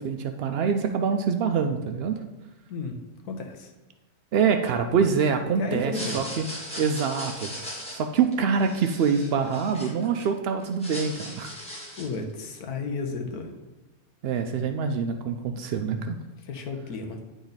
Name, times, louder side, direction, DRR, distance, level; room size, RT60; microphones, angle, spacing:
voice 1, 0.0-2.1 4.3-6.4 6.8-11.5 14.2-16.2, right 6 dB, 85° right, 6 dB, 0.5 m, -25 dB
voice 2, 3.3-3.7 5.6-6.2 12.0-13.5 16.4-17.2, left 3 dB, 80° left, 4 dB, 1.4 m, -33 dB
sound 1, 5.8-10.3 10.6-12.2, equal, 5° left, 1.5 m, -38 dB
10.0 x 4.0 x 4.0 m, 1.1 s
omnidirectional pair, 1.6 m